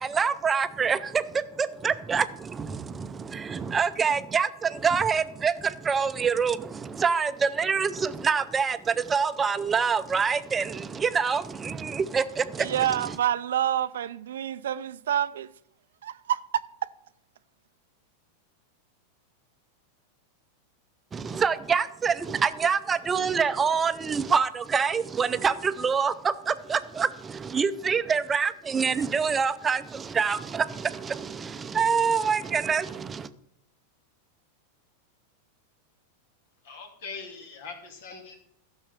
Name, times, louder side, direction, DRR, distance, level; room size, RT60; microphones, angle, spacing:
voice 1, 0.0-13.2 21.1-33.3, right 6 dB, 20° right, 0.6 m, -26 dB
voice 2, 12.6-15.5 16.0-16.6, right 10 dB, 80° right, 0.5 m, -27 dB
voice 3, 36.6-38.4, left 4 dB, 70° left, 2.6 m, -41 dB
12.0 x 6.3 x 6.6 m
hypercardioid pair, 110°, 0 cm